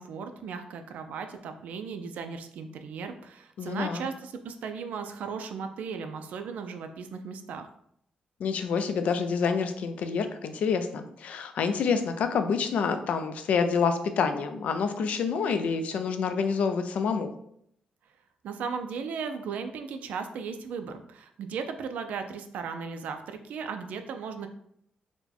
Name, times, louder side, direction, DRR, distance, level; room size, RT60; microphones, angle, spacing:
voice 1, 0.0-7.7 18.4-24.5, right 5 dB, 85° right, 7 dB, 0.4 m, -36 dB
voice 2, 3.6-4.1 8.4-17.3, left 5 dB, 65° left, 8 dB, 0.4 m, -27 dB
4.3 x 2.1 x 4.2 m, 0.70 s
wide cardioid pair, 160°, 3 cm